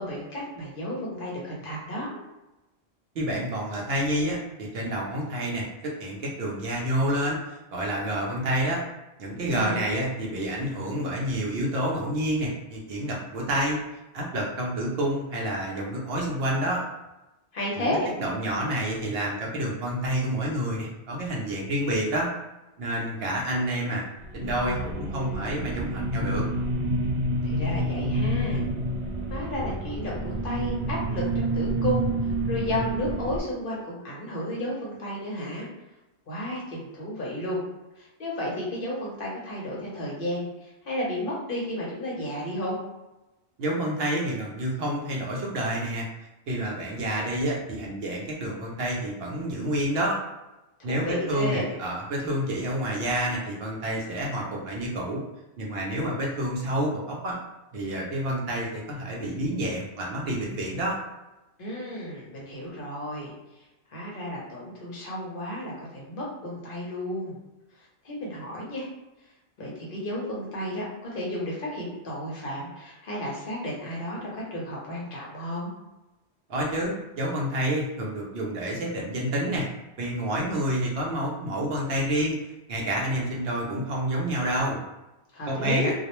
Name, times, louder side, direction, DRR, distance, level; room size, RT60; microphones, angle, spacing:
voice 1, 0.0-2.1 9.5-9.8 17.5-18.1 27.4-28.7 29.3-35.7 36.3-37.6 38.0-42.8 50.8-51.8 61.6-63.3 63.9-67.4 68.0-68.8 69.6-75.7 85.3-85.9, left 1 dB, 55° left, -4 dB, 0.8 m, -32 dB
voice 2, 3.2-7.4 7.7-8.8 9.2-13.8 14.1-16.8 17.8-17.9 18.2-22.3 22.8-24.0 24.3-26.5 43.6-46.1 46.5-50.2 50.8-55.2 55.6-57.4 57.7-61.0 76.5-79.7 80.0-82.4 82.7-84.8 85.5-85.9, right 1 dB, 70° right, -2 dB, 0.8 m, -28 dB
sound 1, 24.2-33.4, right 1 dB, 85° right, 0.9 m, -28 dB
2.3 x 2.0 x 2.9 m, 0.99 s
omnidirectional pair, 1.1 m